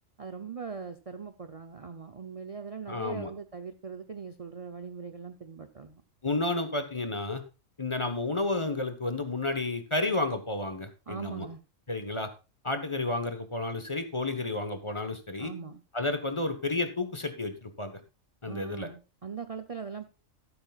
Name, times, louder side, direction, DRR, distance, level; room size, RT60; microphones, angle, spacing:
voice 1, 0.2-6.0 11.1-11.6 15.4-15.8 18.5-20.1, right 6 dB, 35° right, 7 dB, 0.6 m, -40 dB
voice 2, 2.9-3.3 6.2-7.4 7.8-11.5 11.9-12.3 12.6-15.5 15.9-18.0 18.4-18.9, left 2 dB, 25° left, 7 dB, 1.2 m, -31 dB
13.0 x 12.0 x 2.4 m, 0.30 s
omnidirectional pair, 1.4 m